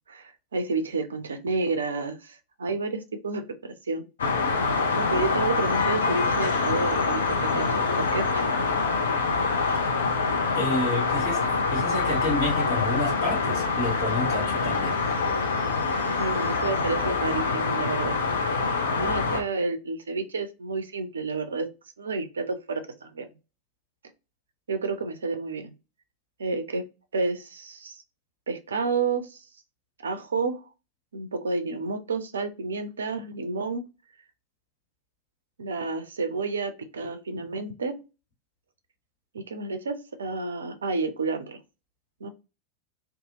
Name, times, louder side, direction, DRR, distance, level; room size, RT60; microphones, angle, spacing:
voice 1, 0.1-4.1 4.9-8.5 16.2-18.2 18.9-21.7 22.0-23.3 24.7-25.7 26.4-26.9 27.1-28.0 28.5-29.4 30.0-30.6 31.1-33.9 35.6-38.0 39.3-41.6 42.2-42.3, right 4 dB, 70° right, 9 dB, 0.4 m, -30 dB
sound 1, 4.2-19.4, left 4 dB, 65° left, 0.5 m, -25 dB
voice 2, 10.5-11.4 11.7-15.0, left 1 dB, 50° left, -2 dB, 1.5 m, -29 dB
2.7 x 2.3 x 2.8 m, 0.30 s
figure-of-eight pair, 90°, 0 cm